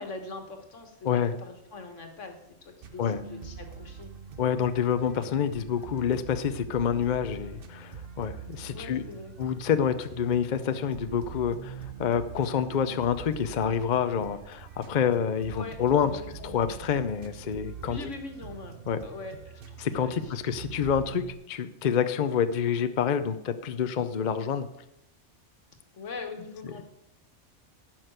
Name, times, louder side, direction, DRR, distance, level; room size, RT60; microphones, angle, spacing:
voice 1, 0.0-4.1 8.7-9.3 15.5-16.6 17.8-18.8 19.0-20.3 25.9-26.8, left 3 dB, 85° left, 5 dB, 1.9 m, -42 dB
sound 1, 2.8-21.3, right 6 dB, 55° right, 1.1 m, -44 dB
voice 2, 4.4-9.0 9.4-16.1 16.4-18.0 18.9-19.0 19.8-24.7, left 8 dB, 45° left, 11 dB, 0.7 m, -27 dB
11.0 x 6.0 x 8.0 m, 0.81 s
omnidirectional pair, 1.2 m